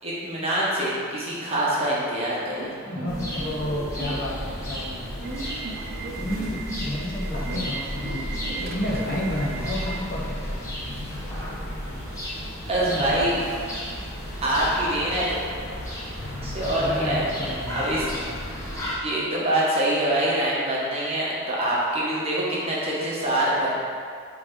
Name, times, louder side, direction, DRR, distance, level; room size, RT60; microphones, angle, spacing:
voice 1, 0.0-2.8 12.7-13.4 14.4-15.3 16.4-17.2 17.7-18.1 19.0-23.8, right 1 dB, 25° right, -6 dB, 1.3 m, -25 dB
Subway metro underground / Alarm, 2.5-12.3, right 4 dB, 45° right, 0.5 m, -38 dB
voice 2, 2.8-10.7 12.8-13.3 16.8-18.3, left 1 dB, 40° left, -5 dB, 1.0 m, -31 dB
sound 1, 3.1-18.9, equal, 15° left, 1.1 m, -33 dB
8.6 x 3.4 x 3.8 m, 2.2 s
head